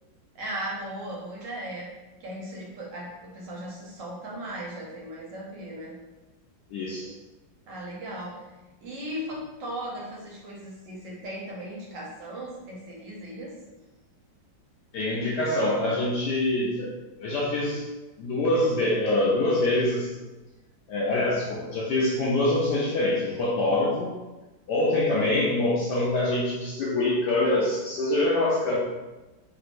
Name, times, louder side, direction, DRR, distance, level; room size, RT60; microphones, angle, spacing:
voice 1, 0.3-1.9 2.2-5.9 7.7-8.4 8.8-13.5, right 1 dB, 70° right, -4 dB, 1.4 m, -37 dB
voice 2, 6.7-7.1 14.9-16.9 17.2-17.9 18.2-20.1 20.9-24.1 24.7-28.8, left 2 dB, 70° left, -4 dB, 1.0 m, -25 dB
3.4 x 2.9 x 2.5 m, 1.1 s
omnidirectional pair, 2.1 m